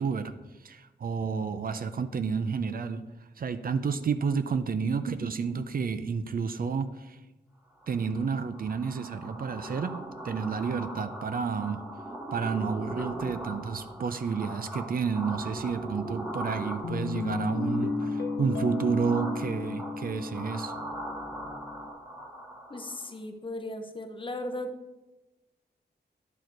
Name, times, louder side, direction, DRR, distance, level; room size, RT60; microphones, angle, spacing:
voice 1, 0.0-3.0 3.4-7.2 7.9-11.8 12.3-20.7, right 5 dB, 55° right, 11 dB, 0.5 m, -30 dB
sound 1, 7.8-23.1, right 1 dB, 10° right, 1.4 m, -40 dB
Guitar, 16.8-21.9, left 4 dB, 80° left, 0.7 m, -34 dB
voice 2, 22.7-24.7, left 1 dB, 30° left, 6 dB, 0.7 m, -36 dB
10.5 x 4.8 x 4.6 m, 1.1 s
wide cardioid pair, 170°, 18 cm